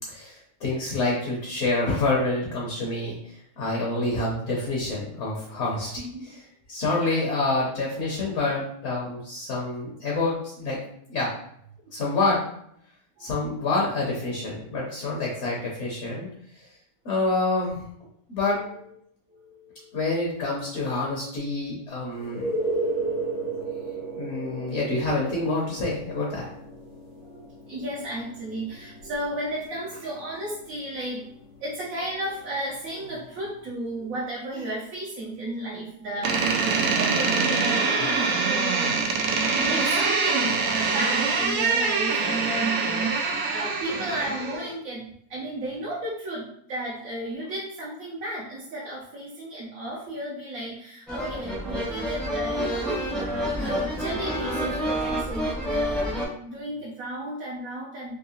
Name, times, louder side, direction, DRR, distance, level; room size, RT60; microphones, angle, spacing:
voice 1, 0.1-6.0 6.7-10.8 11.1-11.3 11.9-12.4 13.2-16.3 16.5-16.7 17.0-17.8 18.3-18.7 19.9-22.5 24.2-26.5, left 2 dB, 55° left, -3 dB, 1.0 m, -27 dB
voice 2, 6.0-6.3 13.2-13.4 18.5-18.7 19.3-20.0 23.4-23.7 24.4-24.6 27.2-39.1 39.5-55.9 56.4-58.2, right 1 dB, 65° right, -6 dB, 1.2 m, -34 dB
sound 1, 22.2-33.7 38.0-38.1, right 2 dB, 70° left, 1.3 m, -35 dB
Door, 36.2-44.7, right 4 dB, 90° right, 1.2 m, -24 dB
sound 2, 51.1-56.3, equal, ahead, 0.5 m, -28 dB
3.6 x 2.8 x 2.8 m, 0.70 s
omnidirectional pair, 1.6 m